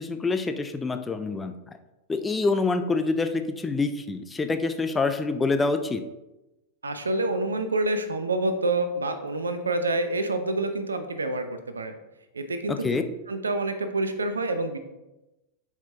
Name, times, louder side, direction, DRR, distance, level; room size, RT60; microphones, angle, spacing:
voice 1, 0.0-1.6 2.1-6.0 12.7-13.0, left 3 dB, 15° left, 7 dB, 0.5 m, -26 dB
voice 2, 6.8-11.9 12.3-13.0 13.3-14.8, right 2 dB, 75° right, 9 dB, 0.6 m, -27 dB
10.5 x 4.9 x 2.8 m, 1.0 s
figure-of-eight pair, 90°, 0 cm